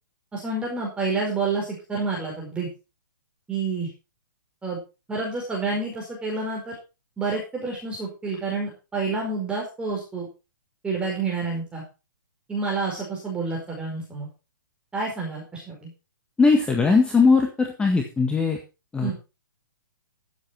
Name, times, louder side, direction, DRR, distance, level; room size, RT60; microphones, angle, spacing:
voice 1, 0.3-2.7 3.5-3.9 4.6-4.8 5.1-6.8 7.2-10.3 10.8-11.8 12.5-14.3 14.9-15.9 19.0-19.1, right 4 dB, 10° right, -3 dB, 4.9 m, -29 dB
voice 2, 16.4-18.6 18.9-19.1, left 4 dB, 10° left, 3 dB, 1.7 m, -19 dB
15.0 x 8.4 x 4.5 m, 0.30 s
hypercardioid pair, 130°, 11 cm